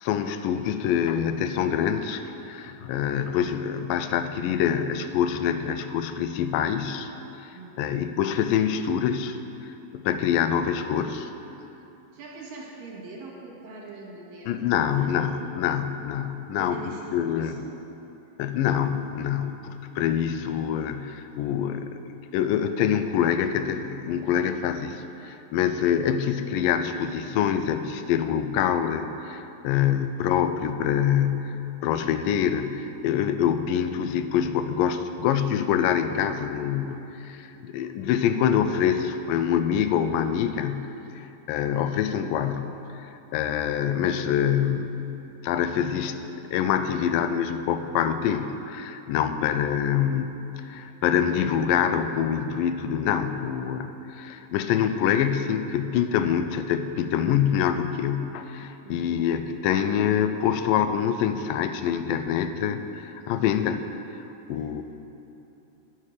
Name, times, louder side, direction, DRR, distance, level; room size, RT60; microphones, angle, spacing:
voice 1, 0.0-7.1 7.4-7.5 7.8-9.4 9.6-11.3 14.5-16.8 17.1-17.6 18.4-31.6 31.8-45.2 45.4-63.8 64.5-64.8, left 9 dB, 85° left, 10 dB, 2.3 m, -25 dB
voice 2, 7.5-8.1 12.1-15.4 16.6-17.6 58.8-59.3 64.6-64.7, right 3 dB, 85° right, -3 dB, 3.5 m, -43 dB
9.7 x 9.0 x 6.7 m, 2.9 s
omnidirectional pair, 3.9 m